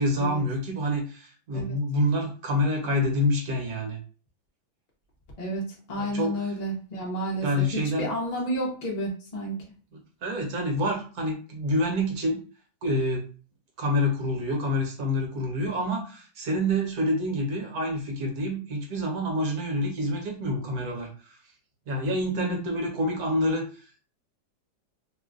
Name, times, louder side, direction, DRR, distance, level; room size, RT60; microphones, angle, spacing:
voice 1, 0.0-4.0 5.9-6.4 7.4-8.1 10.2-12.4 12.8-13.2 13.8-21.4 21.9-24.0, left 1 dB, 60° right, 1 dB, 1.4 m, -27 dB
voice 2, 5.4-7.5 8.0-9.6 22.3-22.6, right 1 dB, 45° left, -2 dB, 0.5 m, -31 dB
3.1 x 2.3 x 3.7 m, 0.37 s
omnidirectional pair, 1.9 m